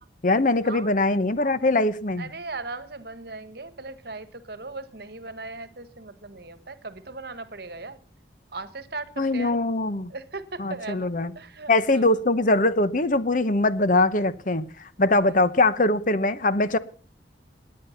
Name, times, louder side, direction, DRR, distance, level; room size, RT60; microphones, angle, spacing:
voice 1, 0.2-2.3 9.2-10.1 10.6-11.3 11.7-16.8, left 2 dB, 45° left, 14 dB, 1.0 m, -22 dB
voice 2, 2.2-8.0 8.5-9.6 10.1-12.0 15.1-15.3, right 3 dB, 60° right, 14 dB, 1.4 m, -38 dB
19.5 x 9.8 x 5.8 m, 0.41 s
head